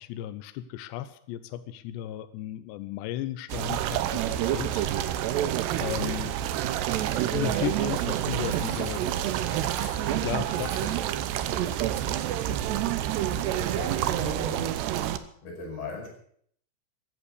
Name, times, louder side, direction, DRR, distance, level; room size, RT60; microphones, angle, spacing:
voice 1, 0.0-5.5 5.8-6.5 7.3-9.3 10.2-11.0, left 12 dB, 80° left, 12 dB, 2.5 m, -35 dB
sound 1, 3.5-15.2, right 11 dB, 75° right, 2.6 m, -28 dB
Chatter / Coin (dropping), 7.8-14.8, right 3 dB, 40° right, 4.1 m, -47 dB
voice 2, 13.3-14.8 15.4-16.1, left 3 dB, 50° left, 0 dB, 8.7 m, -38 dB
15.5 x 11.0 x 8.3 m, 0.63 s
omnidirectional pair, 5.9 m